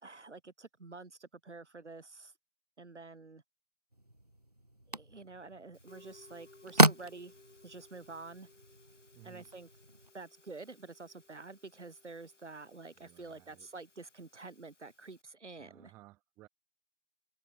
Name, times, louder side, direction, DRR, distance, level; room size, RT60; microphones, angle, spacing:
voice 1, 0.0-2.3 2.8-3.4 4.9-7.3 7.6-8.5 9.2-9.7 10.1-15.9, right 3 dB, 65° right, 3.8 m, -48 dB
sound 1, 3.9-10.1, right 1 dB, 35° right, 0.4 m, -33 dB
Musical instrument, 5.7-15.2, left 3 dB, 70° left, 5.9 m, -62 dB
voice 2, 9.1-9.5 13.0-13.7 15.6-16.5, right 18 dB, 5° right, 1.3 m, -58 dB
figure-of-eight pair, 155°, 37 cm